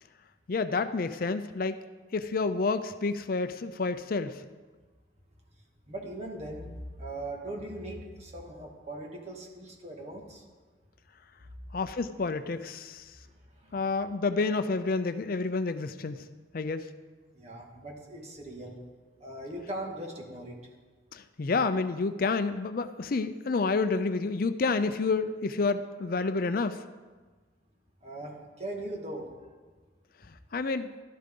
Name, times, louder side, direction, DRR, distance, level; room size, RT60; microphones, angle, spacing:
voice 1, 0.5-1.8 2.1-4.4 11.7-13.0 13.7-16.2 16.5-16.9 21.1-26.8 30.5-30.9, left 4 dB, 50° left, 11 dB, 0.5 m, -29 dB
voice 2, 5.9-10.4 13.6-13.9 17.3-18.8 19.2-20.6 28.0-29.3, right 1 dB, 35° right, 0 dB, 2.0 m, -40 dB
15.0 x 12.5 x 3.8 m, 1.4 s
head